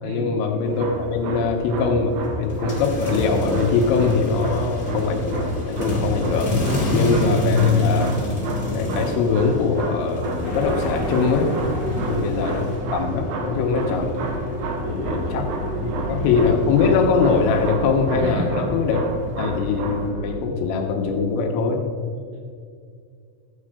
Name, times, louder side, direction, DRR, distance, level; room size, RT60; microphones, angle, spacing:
voice 1, 0.0-6.6 6.9-8.1 8.7-11.5 12.1-12.6 12.9-14.2 14.9-15.5 15.8-19.0 19.4-21.8, left 4 dB, 80° left, 3 dB, 3.7 m, -22 dB
sound 1, 0.6-20.1, right 1 dB, 65° right, 3.1 m, -31 dB
sound 2, 2.5-13.3 13.6-17.7, left 2 dB, 25° left, 2.1 m, -28 dB
sound 3, 10.4-20.4, right 2 dB, 25° right, 3.0 m, -32 dB
voice 2, 11.9-12.4 14.8-15.5 15.9-16.3 18.2-18.5 22.2-22.4, right 2 dB, 80° right, -1 dB, 5.1 m, -34 dB
14.5 x 8.7 x 4.9 m, 2.3 s
omnidirectional pair, 5.9 m